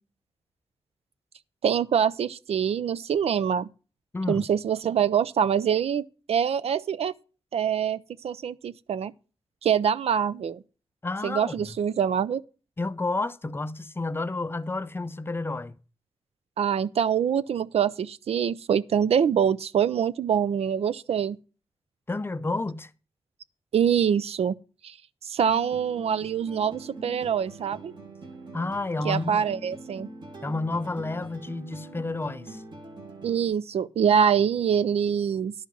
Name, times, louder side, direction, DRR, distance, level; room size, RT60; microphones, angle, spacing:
voice 1, 1.6-3.7 4.3-7.1 7.5-9.1 9.6-10.6 11.2-12.4 16.6-21.4 23.7-24.6 24.8-25.0 25.2-27.9 29.0-30.1 33.2-35.5, right 8 dB, 75° right, 0.4 m, -25 dB
voice 2, 4.1-4.5 11.0-11.6 12.8-15.8 22.1-22.9 28.5-29.4 30.4-32.6, left 2 dB, 20° left, 0.5 m, -30 dB
sound 1, 25.5-33.5, right 2 dB, 45° right, 2.1 m, -44 dB
11.0 x 5.6 x 6.1 m
wide cardioid pair, 110°, 11 cm